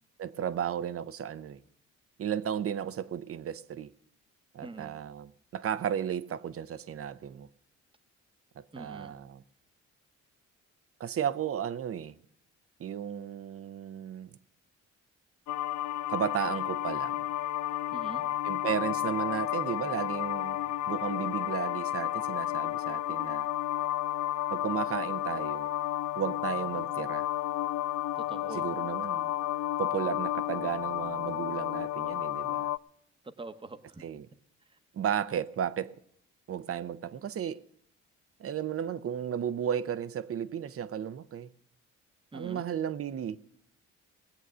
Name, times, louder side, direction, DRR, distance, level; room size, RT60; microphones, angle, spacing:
voice 1, 0.2-1.6 2.2-3.9 4.5-7.5 8.6-9.4 11.0-12.1 12.8-14.3 16.1-17.2 18.4-20.6 20.9-23.5 24.5-25.7 26.2-27.3 28.5-29.3 29.8-32.7 34.0-34.3 34.9-35.9 36.5-37.6 38.4-41.5 42.3-43.4, right 9 dB, 50° right, 0.7 m, -34 dB
voice 2, 4.6-5.0 8.7-9.2 17.9-18.2 28.1-28.7 33.2-34.0 42.3-42.7, right 3 dB, 15° right, 1.0 m, -44 dB
sound 1, 15.5-32.8, left 14 dB, 65° left, 0.4 m, -32 dB
19.0 x 8.1 x 6.2 m
cardioid pair, 90°, 30 cm